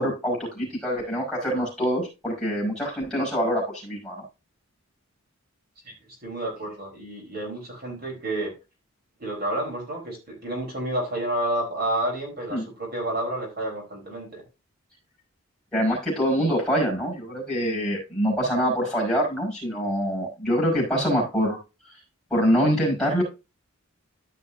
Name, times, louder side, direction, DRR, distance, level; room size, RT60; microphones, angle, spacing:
voice 1, 0.0-4.2 12.5-12.6 15.7-21.6 22.3-23.2, equal, 5° left, -5 dB, 5.3 m, -25 dB
voice 2, 5.8-8.5 9.2-14.4, right 1 dB, 45° right, -2 dB, 4.2 m, -30 dB
14.0 x 5.9 x 2.7 m, 0.27 s
head